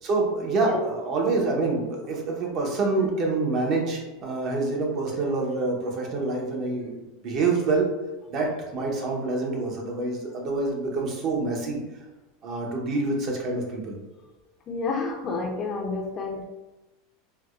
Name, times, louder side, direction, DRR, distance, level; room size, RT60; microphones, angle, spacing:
voice 1, 0.0-6.9 7.2-7.9 8.3-11.8 12.4-14.0, right 3 dB, 40° right, 0 dB, 0.8 m, -26 dB
voice 2, 14.7-16.4, left 3 dB, 35° left, 1 dB, 0.5 m, -30 dB
4.6 x 2.1 x 2.4 m, 1.1 s
supercardioid pair, 130°, 0 cm